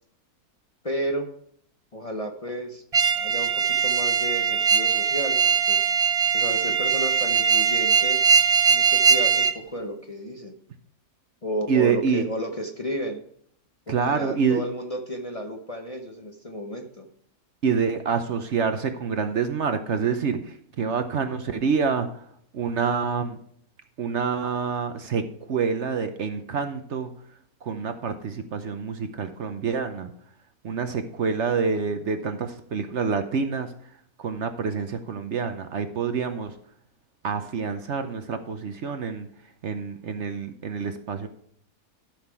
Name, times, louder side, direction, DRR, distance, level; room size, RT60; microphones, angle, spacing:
voice 1, 0.8-1.3 1.9-2.8 3.2-5.8 6.3-8.2 8.7-10.5 11.4-13.2 13.9-17.1, equal, 30° left, 2 dB, 0.8 m, -32 dB
sound 1, 2.9-9.5, right 6 dB, 35° right, 0.5 m, -21 dB
voice 2, 11.7-12.2 13.9-14.6 17.6-22.2 22.5-23.4 24.0-27.1 27.6-30.1 30.6-33.7 34.2-36.5 37.2-39.3 39.6-41.3, right 5 dB, 55° right, 8 dB, 1.0 m, -27 dB
12.0 x 5.8 x 4.7 m, 0.66 s
omnidirectional pair, 1.6 m